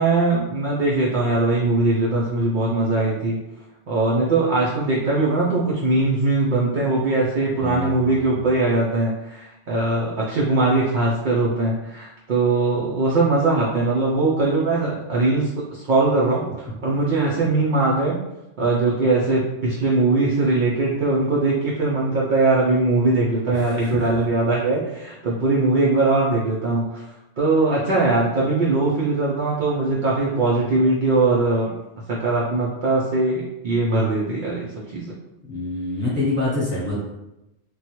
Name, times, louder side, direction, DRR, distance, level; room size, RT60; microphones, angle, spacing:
voice 1, 0.0-3.4 3.9-18.2 18.6-27.0 27.4-31.7 32.1-35.1, right 2 dB, 55° right, -5 dB, 0.6 m, -21 dB
voice 2, 7.6-8.2 23.5-24.1 35.5-37.0, left 2 dB, 10° left, -8 dB, 1.0 m, -26 dB
3.1 x 2.2 x 2.9 m, 0.93 s
omnidirectional pair, 1.2 m